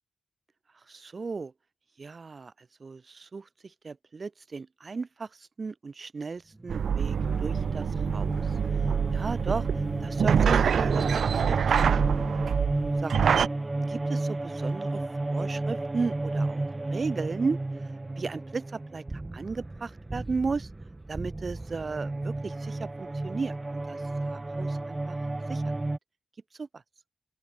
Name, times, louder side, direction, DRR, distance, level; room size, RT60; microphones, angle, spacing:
voice 1, 0.7-1.5 2.0-8.6 9.1-9.7 10.0-12.0 13.0-13.4 13.8-20.7 21.1-25.2 25.5-25.7 26.5-26.8, right 4 dB, 45° right, 5.7 m, -35 dB
sound 1, 6.6-26.0, right 2 dB, 20° right, 0.6 m, -33 dB
sound 2, 6.7-13.5, right 7 dB, 80° right, 1.5 m, -26 dB
open air
wide cardioid pair, 95°, 0 cm